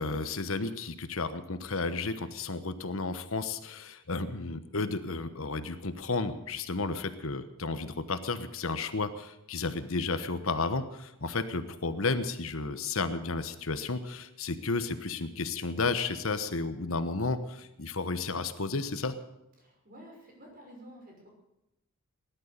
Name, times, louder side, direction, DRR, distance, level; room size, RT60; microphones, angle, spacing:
voice 1, 0.0-19.2, left 3 dB, 70° left, 10 dB, 1.2 m, -32 dB
voice 2, 19.6-21.3, equal, 40° right, 0 dB, 6.0 m, -51 dB
18.0 x 11.5 x 6.8 m, 0.88 s
head